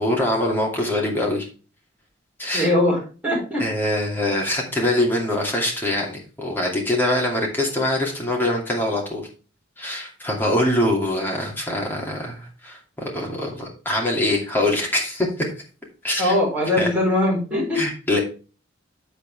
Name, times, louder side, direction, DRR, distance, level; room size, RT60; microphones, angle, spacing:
voice 1, 0.0-1.5 2.4-2.7 3.6-9.3 9.8-15.5 16.0-16.3 16.8-16.9 17.7-18.2, left 1 dB, 10° left, -2 dB, 2.5 m, -23 dB
voice 2, 2.5-3.6 16.2-17.8, left 1 dB, 10° right, -4 dB, 4.9 m, -21 dB
8.4 x 7.5 x 3.3 m, 0.35 s
head